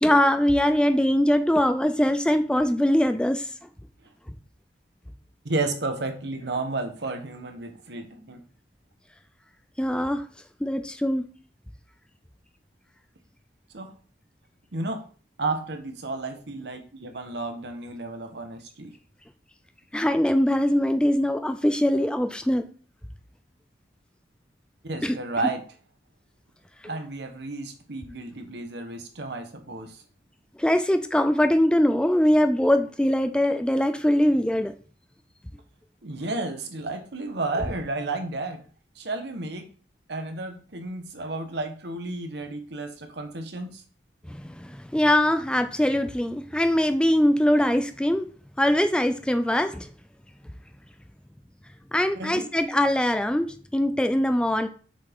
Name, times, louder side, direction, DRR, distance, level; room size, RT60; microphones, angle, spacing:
voice 1, 0.0-3.5 9.8-10.2 10.6-11.2 19.9-22.6 25.0-25.2 26.8-26.9 30.6-34.7 44.3-48.3 48.6-49.9 51.9-53.5 53.7-54.7, left 1 dB, 5° left, 0.4 m, -22 dB
voice 2, 5.4-8.4 13.7-13.9 14.7-15.0 15.4-18.9 24.8-25.6 26.8-30.0 36.0-38.6 39.0-39.7 40.1-43.8 52.1-52.5, right 2 dB, 70° right, 1.2 m, -32 dB
6.5 x 6.0 x 3.6 m
head